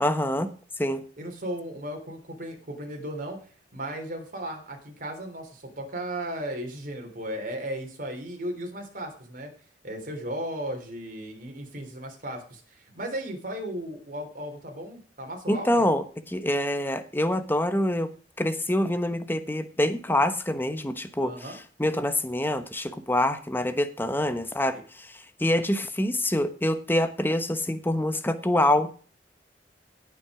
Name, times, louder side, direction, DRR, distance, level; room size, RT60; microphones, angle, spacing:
voice 1, 0.0-0.5 0.8-1.0 15.5-18.1 18.4-21.5 21.8-28.9, left 1 dB, 10° left, 10 dB, 1.1 m, -26 dB
voice 2, 1.2-3.4 3.7-9.5 9.8-15.9 21.2-21.6, right 1 dB, 50° right, 4 dB, 3.4 m, -36 dB
17.5 x 6.0 x 4.9 m, 0.40 s
head